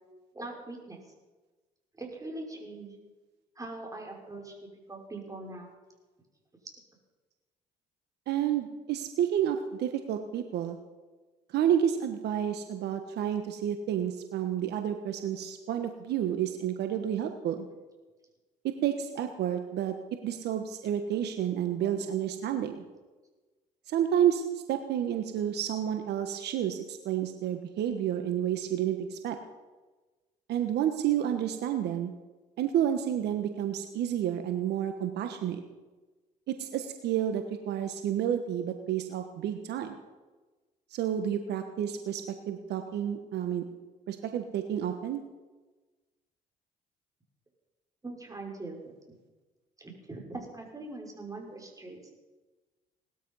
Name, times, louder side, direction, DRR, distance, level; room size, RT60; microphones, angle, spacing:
voice 1, 0.3-1.0 2.0-3.0 3.6-4.5 4.9-5.7 21.8-22.1 48.0-48.8 49.8-52.1, right 2 dB, 20° right, 1 dB, 5.7 m, -42 dB
voice 2, 8.3-10.8 11.5-17.7 18.6-19.9 20.2-22.8 23.9-29.4 30.5-32.1 32.6-35.6 36.5-40.0 40.9-43.6 44.1-45.2, right 10 dB, 70° right, 7 dB, 1.3 m, -30 dB
19.0 x 13.0 x 5.6 m, 1.2 s
supercardioid pair, 65°, 18 cm